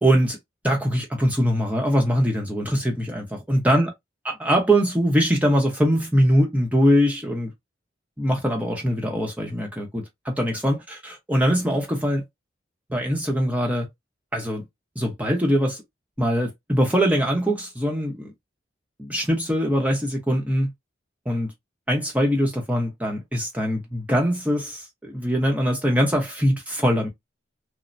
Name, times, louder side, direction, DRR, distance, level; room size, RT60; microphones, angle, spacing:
voice 1, 0.0-0.4 0.6-3.9 4.2-7.5 8.2-12.2 12.9-13.9 14.3-14.6 15.0-15.8 16.2-18.3 19.0-20.7 21.3-21.5 21.9-27.1, equal, 10° right, 0.7 m, -22 dB
3.1 x 2.1 x 2.5 m
head